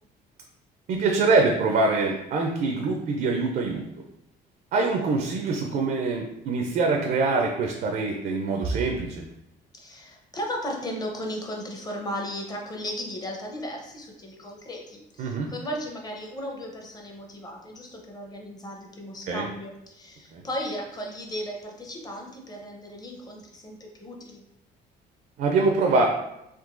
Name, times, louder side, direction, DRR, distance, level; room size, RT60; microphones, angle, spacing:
voice 1, 0.9-3.9 4.7-9.2 15.2-15.5 19.3-19.5 20.3-20.4 25.4-26.1, right 3 dB, 60° right, 2 dB, 0.4 m, -24 dB
voice 2, 9.8-24.4, equal, 25° left, 1 dB, 0.7 m, -36 dB
3.7 x 2.6 x 2.5 m, 0.85 s
cardioid pair, 110°, 17 cm